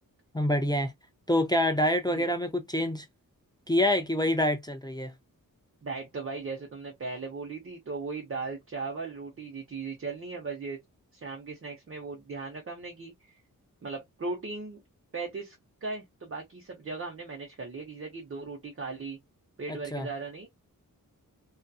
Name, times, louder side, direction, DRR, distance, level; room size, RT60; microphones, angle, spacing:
voice 1, 0.3-0.9 1.3-3.1 3.7-5.1 19.7-20.1, left 1 dB, 10° left, 0.4 m, -26 dB
voice 2, 5.8-10.8 11.1-13.4 13.8-14.8 15.1-19.2 19.6-20.5, right 4 dB, 40° right, 0.8 m, -38 dB
2.7 x 2.3 x 2.3 m
wide cardioid pair, 120°, 34 cm